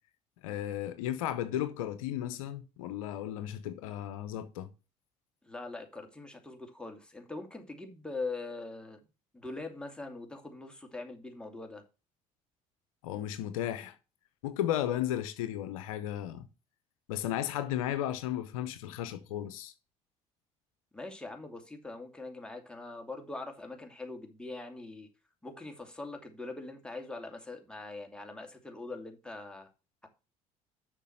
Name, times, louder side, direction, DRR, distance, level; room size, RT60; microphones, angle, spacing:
voice 1, 0.4-4.7 13.0-14.0 14.4-16.4 17.1-19.7, left 11 dB, 80° left, 0.7 m, -34 dB
voice 2, 5.4-9.0 9.3-11.8 20.9-25.1 25.4-29.7, left 3 dB, 5° left, 2.5 m, -42 dB
6.7 x 6.1 x 6.4 m
hypercardioid pair, 60°, 17 cm